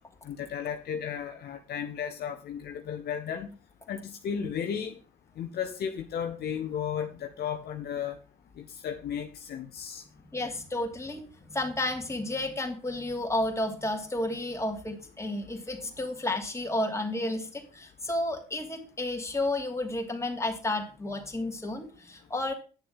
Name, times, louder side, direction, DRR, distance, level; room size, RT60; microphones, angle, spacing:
voice 1, 0.2-3.5 3.9-5.0 5.4-8.2 8.6-10.0, left 8 dB, 60° left, 5 dB, 1.2 m, -34 dB
voice 2, 10.2-11.2 11.5-22.5, left 1 dB, 15° left, 2 dB, 2.9 m, -32 dB
9.9 x 6.7 x 5.6 m, 0.35 s
hypercardioid pair, 60°, 18 cm